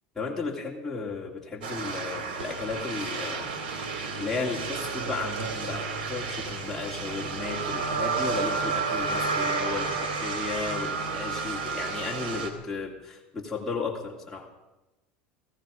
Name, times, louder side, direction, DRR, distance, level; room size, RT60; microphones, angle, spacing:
voice 1, 0.2-3.5 4.2-14.5, left 4 dB, 5° left, -3 dB, 2.7 m, -34 dB
sound 1, 1.6-12.5, right 4 dB, 90° right, 2.8 m, -31 dB
18.5 x 15.0 x 5.1 m, 1.0 s
supercardioid pair, 120°, 5 cm